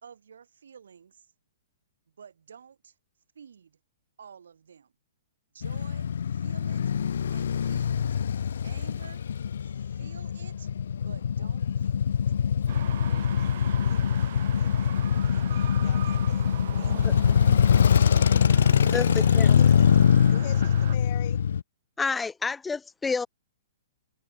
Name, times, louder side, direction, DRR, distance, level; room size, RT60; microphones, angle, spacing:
voice 1, 0.0-1.2 2.2-2.9 3.3-3.8 4.2-4.9 5.5-6.8 7.3-8.1 8.6-9.2 9.6-12.2, right 7 dB, 80° right, 4.9 m, -50 dB
Male speech man speaking / Motorcycle / Idling, 5.6-21.6, left 8 dB, 75° left, 0.7 m, -23 dB
sound 1, 12.7-21.0, right 12 dB, 60° right, 1.8 m, -41 dB
voice 2, 12.9-16.5 16.8-17.1 19.4-19.9 20.3-21.4, left 19 dB, 45° left, 1.4 m, -45 dB
voice 3, 18.9-19.8 22.0-23.3, left 4 dB, 10° left, 0.6 m, -30 dB
hypercardioid pair, 130°, 0 cm